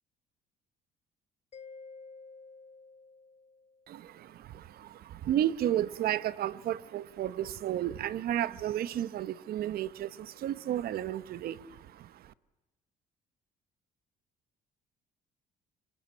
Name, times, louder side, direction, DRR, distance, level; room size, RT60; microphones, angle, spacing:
Mallet percussion, 1.5-4.1, left 4 dB, 40° left, 1.0 m, -51 dB
voice 1, 3.9-12.3, right 11 dB, 65° right, 1.1 m, -33 dB
26.5 x 24.0 x 8.9 m
cardioid pair, 110°, 17 cm